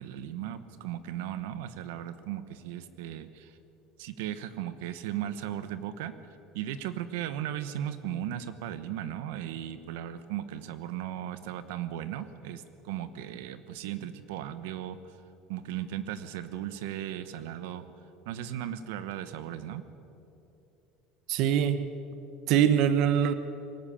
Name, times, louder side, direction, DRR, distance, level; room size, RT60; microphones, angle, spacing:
voice 1, 0.0-3.6 4.0-6.1 6.5-15.2 15.5-17.9 18.2-19.8, right 11 dB, 85° right, 12 dB, 1.1 m, -36 dB
voice 2, 21.3-21.9 22.5-23.3, right 9 dB, 55° right, 12 dB, 0.9 m, -23 dB
22.5 x 13.5 x 8.6 m, 2.8 s
cardioid pair, 150°, 0 cm